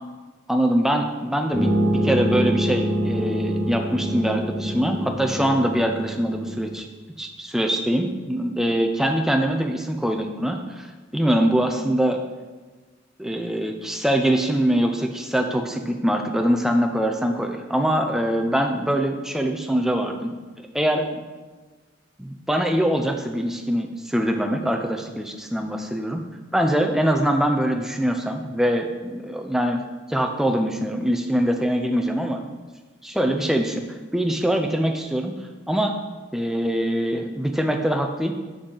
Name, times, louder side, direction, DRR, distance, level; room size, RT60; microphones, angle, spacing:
voice 1, 0.5-6.9 7.2-10.9 11.1-12.2 13.2-20.4 20.7-21.2 22.2-26.2 26.5-29.8 30.1-32.5 33.0-33.8 34.1-35.3 35.7-35.9 36.3-38.3, equal, ahead, 4 dB, 0.5 m, -23 dB
sound 1, 1.5-6.8, equal, 15° left, 1.5 m, -25 dB
6.3 x 6.3 x 3.9 m, 1.3 s
head